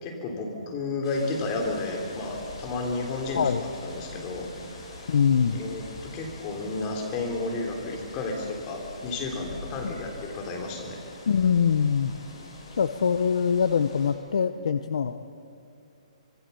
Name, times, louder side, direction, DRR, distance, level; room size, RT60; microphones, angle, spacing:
voice 1, 0.0-4.9 5.5-11.0, left 3 dB, 20° left, 1 dB, 3.4 m, -32 dB
sound 1, 1.0-14.1, left 2 dB, 45° left, 7.2 m, -44 dB
voice 2, 5.1-5.6 9.8-9.9 11.3-12.1 12.8-15.2, left 7 dB, 60° left, 10 dB, 0.9 m, -23 dB
25.0 x 22.5 x 7.0 m, 2.5 s
hypercardioid pair, 170°, 4 cm